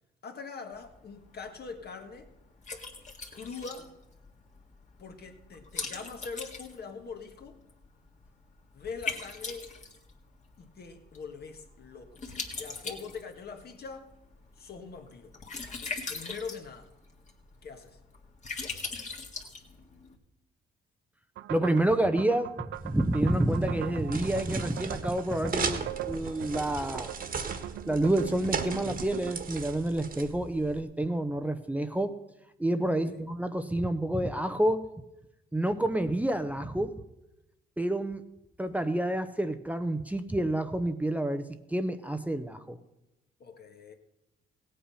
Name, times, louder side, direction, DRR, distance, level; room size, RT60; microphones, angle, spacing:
voice 1, 0.2-2.3 3.3-3.9 5.0-7.6 8.7-9.7 10.6-12.2 12.5-14.1 14.6-15.3 16.1-16.9 17.6-18.0 33.1-33.2 43.4-43.9, left 5 dB, 55° left, 5 dB, 1.7 m, -42 dB
Liquid, 0.7-20.2, left 4 dB, 35° left, 1.9 m, -42 dB
sound 1, 21.4-29.4, right 13 dB, 70° right, 0.5 m, -41 dB
voice 2, 21.5-22.5 22.8-27.1 27.9-32.2 32.6-34.9 35.5-37.0 37.8-38.2 38.6-42.8, right 1 dB, 5° right, 8 dB, 0.7 m, -28 dB
sound 2, 22.8-30.8, right 5 dB, 45° right, 1.5 m, -38 dB
16.5 x 8.5 x 5.6 m, 0.92 s
cardioid pair, 90°, 20 cm